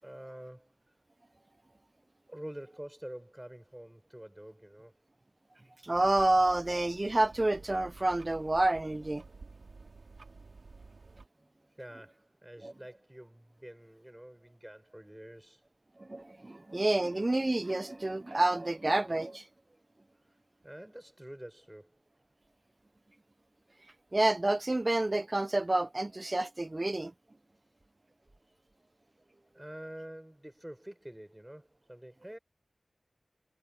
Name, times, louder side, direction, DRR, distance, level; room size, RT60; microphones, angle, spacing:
voice 1, 0.0-1.0 2.3-5.0 11.8-15.6 20.2-20.4 20.6-22.0 29.5-32.4, right 1 dB, 15° right, 6.8 m, -47 dB
voice 2, 5.8-9.2 12.6-12.7 16.0-19.4 24.1-27.1, right 2 dB, 35° right, 0.7 m, -29 dB
sound 1, 5.9-11.3, right 3 dB, 85° right, 3.1 m, -52 dB
wide cardioid pair, 60°, 0 cm